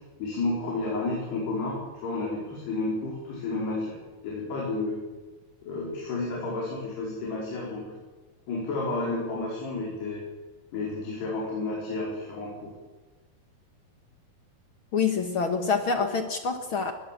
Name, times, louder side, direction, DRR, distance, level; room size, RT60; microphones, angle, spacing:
voice 1, 0.2-4.0 4.2-5.0 5.6-7.9 8.5-10.2 10.7-12.7, left 2 dB, 90° left, -4 dB, 6.7 m, -31 dB
voice 2, 14.9-16.9, left 5 dB, 70° left, 6 dB, 1.2 m, -26 dB
21.0 x 20.5 x 7.5 m, 1.3 s
omnidirectional pair, 4.6 m